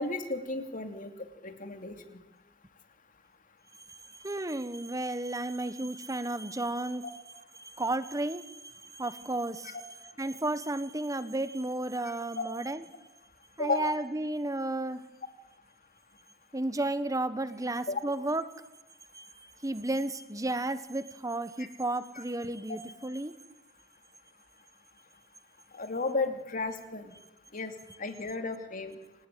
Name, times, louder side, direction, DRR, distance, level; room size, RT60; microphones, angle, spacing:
voice 1, 0.0-2.0 7.0-7.1 9.6-9.8 12.0-12.5 13.6-14.0 17.9-18.0 22.2-22.3 25.7-27.1 27.5-27.7 28.0-28.9, left 3 dB, 40° left, 7 dB, 2.8 m, -34 dB
voice 2, 3.9-7.0 7.6-9.8 10.2-12.8 13.6-15.0 16.5-18.4 19.1-23.3, right 2 dB, 15° right, 13 dB, 1.2 m, -33 dB
28.5 x 18.5 x 9.4 m, 0.98 s
head